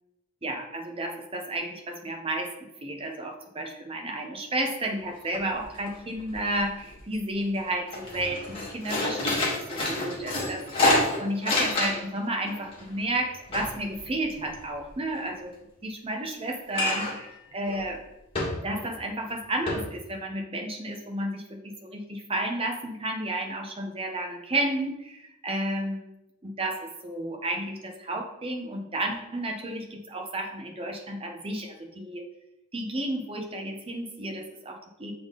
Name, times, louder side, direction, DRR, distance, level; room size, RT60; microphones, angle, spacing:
voice 1, 0.4-2.5 2.8-10.9 11.2-18.0 18.6-26.1 26.4-32.3 32.7-35.1, right 1 dB, 25° right, 3 dB, 0.7 m, -32 dB
sound 1, 5.0-5.1 5.3-5.9 6.2-7.0 7.4-7.6 7.9-12.2 12.5-14.9 16.7-17.3 17.7-17.8 18.3-18.9 19.3-19.4 19.7-19.8, left 2 dB, 25° left, 1.6 m, -28 dB
6.8 x 3.6 x 3.8 m, 0.90 s
head